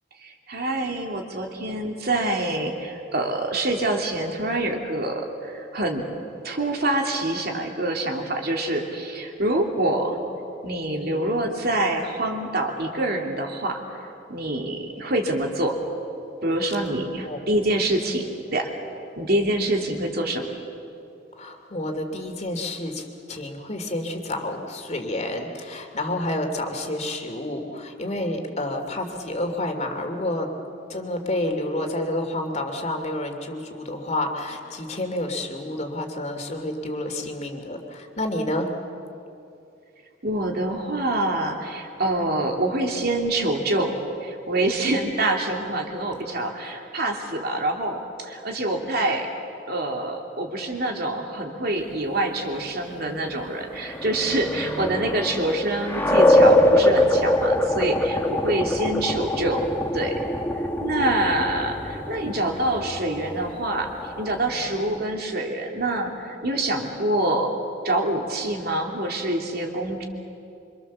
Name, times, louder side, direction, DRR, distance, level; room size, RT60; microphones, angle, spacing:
voice 1, 0.2-6.0 6.4-10.2 10.6-15.8 16.4-18.7 19.2-20.5 40.2-49.3 49.7-60.1 60.8-63.9 64.2-67.5 67.8-70.0, right 1 dB, 60° right, 2 dB, 2.9 m, -26 dB
voice 2, 21.4-23.0 23.3-30.5 30.9-38.7, left 1 dB, 40° left, 4 dB, 2.8 m, -29 dB
sound 1, 53.5-64.9, left 1 dB, 15° left, 1.6 m, -23 dB
26.0 x 25.5 x 7.3 m, 2.7 s
head